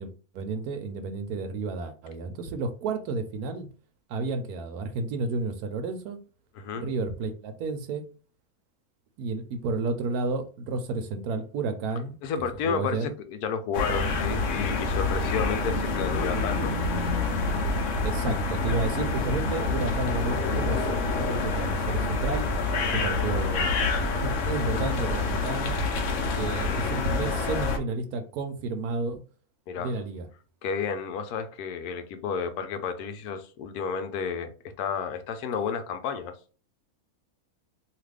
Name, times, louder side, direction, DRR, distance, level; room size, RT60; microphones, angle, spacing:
voice 1, 0.0-3.7 4.1-6.2 6.8-8.0 9.2-12.2 12.7-13.1 18.0-20.9 21.2-22.5 22.9-23.7 24.2-25.8 26.3-29.2 29.7-30.3, right 3 dB, 85° right, 1.1 m, -31 dB
voice 2, 6.6-6.9 12.2-16.8 29.7-29.9 30.6-36.3, left 6 dB, 85° left, 1.1 m, -31 dB
sound 1, 13.7-27.8, left 3 dB, 65° left, 0.9 m, -27 dB
2.9 x 2.4 x 3.3 m
omnidirectional pair, 1.6 m